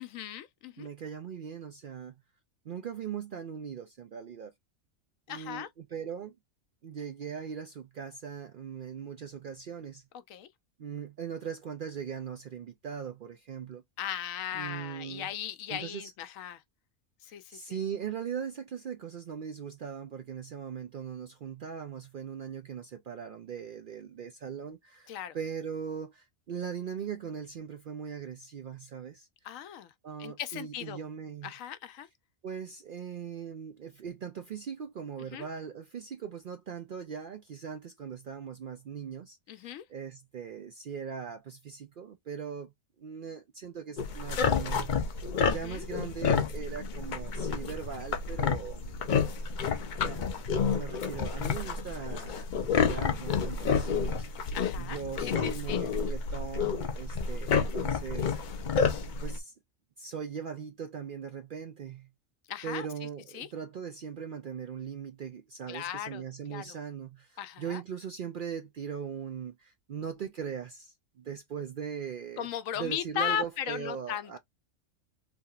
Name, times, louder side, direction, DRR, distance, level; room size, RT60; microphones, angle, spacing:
voice 1, 0.0-0.9 5.3-5.7 10.3-10.5 14.0-16.6 17.2-17.8 25.1-25.4 29.4-29.9 30.2-31.0 31.4-32.1 35.3-35.5 39.5-39.8 45.5-45.9 54.5-55.8 62.5-63.1 63.3-63.5 65.7-66.2 66.5-66.7 67.4-67.8 72.4-74.4, left 9 dB, 85° left, 1.0 m, -37 dB
voice 2, 0.8-2.2 2.6-4.5 5.3-6.4 6.8-10.0 10.8-13.8 14.5-15.3 15.7-16.1 17.3-29.3 30.0-31.5 32.4-42.7 43.0-45.1 45.4-49.0 50.0-50.2 50.5-58.4 59.2-59.6 60.0-62.1 62.6-72.5 72.8-74.4, right 7 dB, 65° right, 0.5 m, -40 dB
sound 1, 44.0-59.4, left 6 dB, 55° left, 0.5 m, -30 dB
3.5 x 2.8 x 2.3 m
omnidirectional pair, 1.4 m